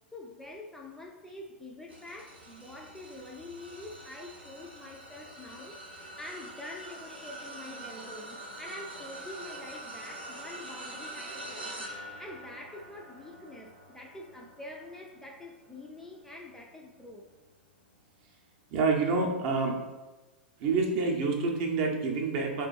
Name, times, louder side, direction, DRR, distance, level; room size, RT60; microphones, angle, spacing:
voice 1, 0.1-5.8 6.2-11.9 12.2-17.3, left 1 dB, 5° left, 0 dB, 0.3 m, -46 dB
sound 1, 1.9-17.4 17.9-18.2 19.4-19.5, right 1 dB, 85° right, 0.6 m, -45 dB
voice 2, 18.7-19.8 20.6-22.7, right 4 dB, 45° right, 1 dB, 0.6 m, -27 dB
2.5 x 2.2 x 4.0 m, 1.2 s
figure-of-eight pair, 95°, 6 cm